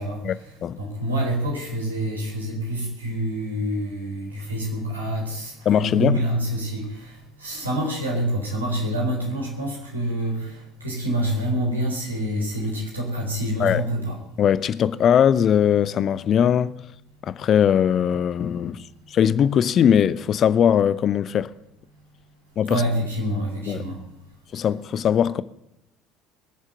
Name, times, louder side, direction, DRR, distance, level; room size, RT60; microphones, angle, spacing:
voice 1, 0.0-14.2 22.7-24.0, right 1 dB, 80° right, 3.8 m, -27 dB
voice 2, 5.7-6.2 13.6-13.8 14.4-16.8 17.2-21.5 22.6-22.8 23.7-23.9 24.5-25.4, left 9 dB, 40° left, 0.6 m, -20 dB
21.5 x 7.4 x 7.7 m
figure-of-eight pair, 60°, 0 cm